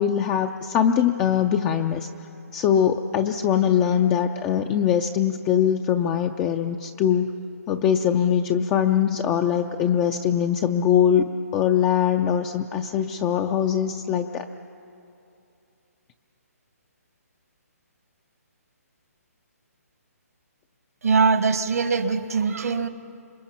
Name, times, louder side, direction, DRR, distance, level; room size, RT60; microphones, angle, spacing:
voice 1, 0.0-2.1 2.5-7.3 7.7-11.3 11.5-14.5, left 9 dB, 15° left, 6 dB, 0.4 m, -22 dB
voice 2, 21.0-22.9, right 5 dB, 70° right, 10 dB, 1.5 m, -22 dB
27.0 x 23.0 x 5.8 m, 2.7 s
hypercardioid pair, 165°, 9 cm